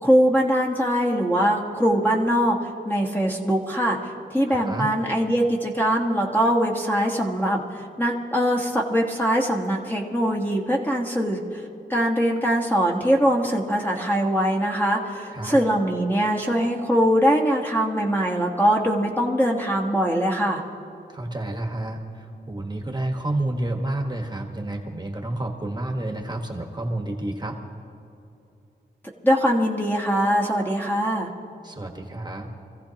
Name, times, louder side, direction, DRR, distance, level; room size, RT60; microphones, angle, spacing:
voice 1, 0.0-11.6 11.9-20.6 29.2-31.3, equal, 10° left, -1 dB, 1.4 m, -22 dB
voice 2, 4.4-4.9 15.3-15.6 21.1-27.6 31.6-32.5, right 1 dB, 25° right, 2 dB, 1.4 m, -30 dB
25.5 x 15.5 x 2.9 m, 2.7 s
wide cardioid pair, 130°, 18 cm